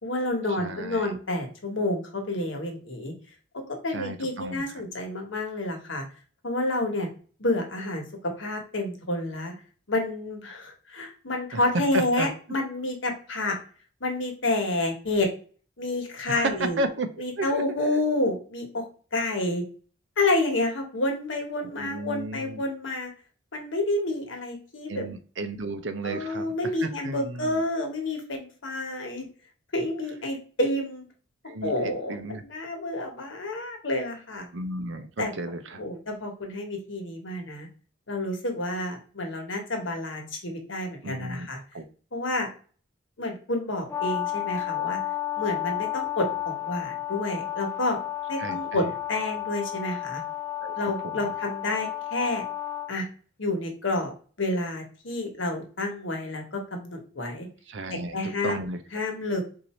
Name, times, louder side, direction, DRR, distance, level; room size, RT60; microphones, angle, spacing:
voice 1, 0.0-3.1 3.5-6.0 6.4-7.1 7.4-8.0 8.4-9.5 9.9-13.6 14.0-15.3 15.8-16.8 17.2-18.8 19.1-19.6 20.2-23.1 23.5-25.0 26.0-29.3 29.7-31.0 31.6-34.5 35.2-35.3 35.8-37.7 38.1-41.6 42.1-42.5 43.2-45.0 45.4-48.0 48.3-50.2 50.8-52.4 52.9-53.1 53.4-54.1 54.4-57.5 58.1-58.6 58.9-59.4, left 2 dB, 70° left, 3 dB, 1.2 m, -29 dB
voice 2, 0.6-1.2 3.9-4.6 11.5-11.6 11.9-12.3 16.3-16.5 16.8-17.1 17.4-17.6 21.6-22.6 24.9-26.5 26.8-27.6 31.5-32.4 34.5-35.8 41.0-41.5 41.7-41.8 48.4-48.9 50.6-50.7 51.0-51.2 57.7-58.8, right 2 dB, 65° right, 8 dB, 0.6 m, -33 dB
Brass instrument, 43.9-52.9, left 13 dB, 15° left, 0.4 m, -32 dB
4.7 x 2.6 x 4.3 m, 0.40 s
head